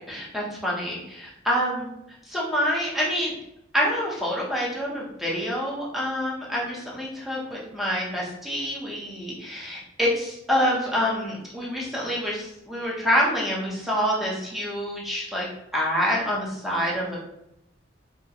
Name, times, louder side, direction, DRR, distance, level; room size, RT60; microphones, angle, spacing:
voice 1, 0.1-1.9 2.2-3.3 3.7-15.5 15.7-17.2, equal, ahead, -5 dB, 0.6 m, -27 dB
2.3 x 2.1 x 2.7 m, 0.83 s
head